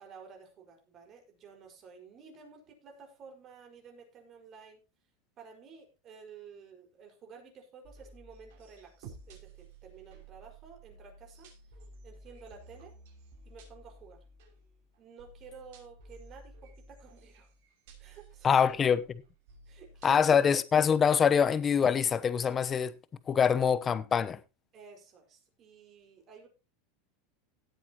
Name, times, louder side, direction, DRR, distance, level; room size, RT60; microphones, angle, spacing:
voice 1, 0.0-4.8 5.4-11.5 12.0-13.0 13.5-14.3 15.0-17.5 18.0-18.7 19.7-20.4 24.7-26.5, right 5 dB, 35° right, 5.2 m, -52 dB
sound 1, 7.8-20.3, right 2 dB, 70° right, 6.0 m, -54 dB
voice 2, 18.4-19.0 20.0-22.9 23.3-24.4, left 7 dB, 25° left, 0.9 m, -24 dB
17.5 x 8.5 x 3.0 m
supercardioid pair, 125°, 0 cm